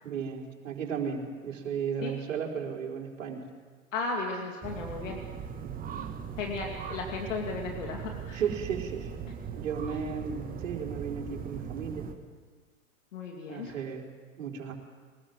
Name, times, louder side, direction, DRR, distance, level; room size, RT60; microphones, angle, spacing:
voice 1, 0.0-3.5 5.6-6.1 8.3-9.1 9.5-12.1 13.5-14.1 14.4-14.7, right 7 dB, 65° right, 0 dB, 4.3 m, -35 dB
voice 2, 3.9-5.2 6.4-8.4 13.1-13.8, left 3 dB, 60° left, 1 dB, 2.7 m, -35 dB
sound 1, 4.6-12.1, right 7 dB, 20° right, 1.7 m, -39 dB
23.0 x 20.5 x 7.9 m, 1.5 s
figure-of-eight pair, 95°, 42 cm